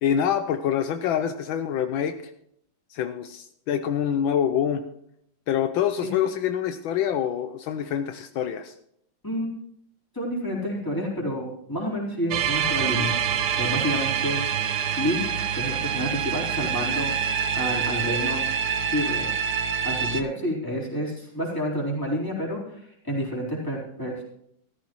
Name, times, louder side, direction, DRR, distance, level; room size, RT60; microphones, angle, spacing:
voice 1, 0.0-2.3 2.9-4.9 5.5-8.7, left 9 dB, 80° left, 8 dB, 1.4 m, -26 dB
voice 2, 10.1-13.2 13.5-14.4 15.0-15.3 15.5-17.1 17.5-18.5 18.9-19.3 19.8-24.2, equal, 10° left, -5 dB, 3.8 m, -29 dB
sound 1, 12.3-20.2, right 8 dB, 65° right, 1.3 m, -26 dB
14.5 x 13.5 x 3.1 m, 0.71 s
omnidirectional pair, 2.2 m